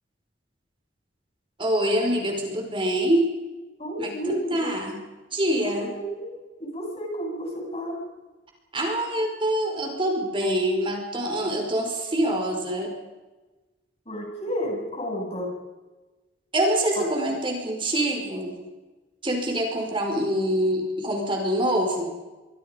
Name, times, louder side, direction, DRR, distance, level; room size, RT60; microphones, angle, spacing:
voice 1, 1.6-3.3 4.0-5.0 5.3-5.9 8.7-12.9 16.5-18.6 19.2-22.1, right 1 dB, 30° right, 2 dB, 5.1 m, -25 dB
voice 2, 3.8-4.7 5.4-8.0 14.1-15.5 17.0-17.1, equal, 35° left, 0 dB, 7.9 m, -31 dB
29.0 x 24.5 x 5.3 m, 1.2 s
head